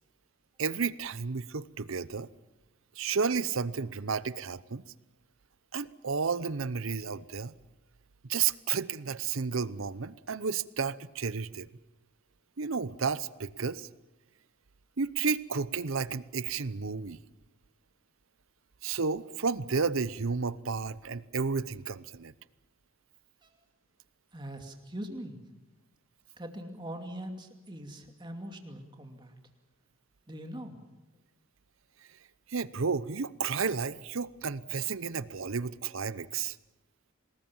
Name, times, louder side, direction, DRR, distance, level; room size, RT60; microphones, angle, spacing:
voice 1, 0.6-2.3 3.0-4.8 5.7-7.5 8.3-11.7 12.6-13.9 15.0-17.2 18.8-22.3 32.5-36.6, right 5 dB, 70° right, 17 dB, 0.8 m, -32 dB
voice 2, 24.3-25.4 26.4-29.3 30.3-30.8, right 1 dB, 20° right, 4 dB, 2.6 m, -42 dB
26.0 x 20.0 x 7.2 m, 1.0 s
head